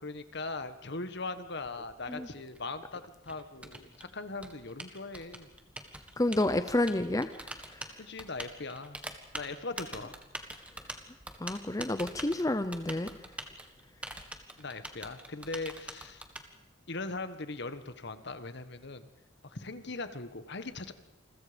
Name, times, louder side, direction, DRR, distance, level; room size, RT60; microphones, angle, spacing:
voice 1, 0.0-5.5 8.0-9.0 9.3-10.2 14.6-16.2 16.9-19.1 19.4-20.9, left 3 dB, 55° left, 11 dB, 1.5 m, -40 dB
Typing, 1.7-16.4, right 1 dB, 5° right, 1.7 m, -44 dB
voice 2, 6.2-8.0 11.4-13.1, left 1 dB, 15° left, 10 dB, 0.7 m, -30 dB
28.5 x 22.0 x 5.2 m, 0.99 s
head